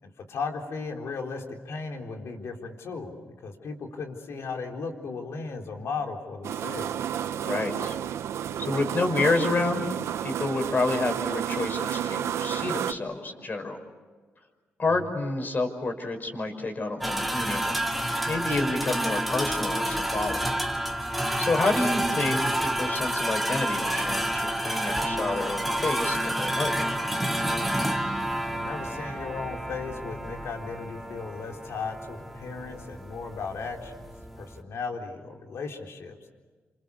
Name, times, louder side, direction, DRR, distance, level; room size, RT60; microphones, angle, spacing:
voice 1, 0.0-7.0 28.5-34.0 34.4-36.4, left 4 dB, 75° left, 3 dB, 4.0 m, -36 dB
sound 1, 6.4-12.9, right 10 dB, 85° right, 0.8 m, -31 dB
voice 2, 7.4-8.0 8.6-9.9 10.2-13.8 14.8-20.4 21.4-26.8, left 2 dB, 40° left, 5 dB, 5.6 m, -29 dB
sound 2, 17.0-34.6, right 1 dB, ahead, 2.2 m, -29 dB
28.5 x 27.5 x 7.0 m, 1.4 s
cardioid pair, 80°, 5 cm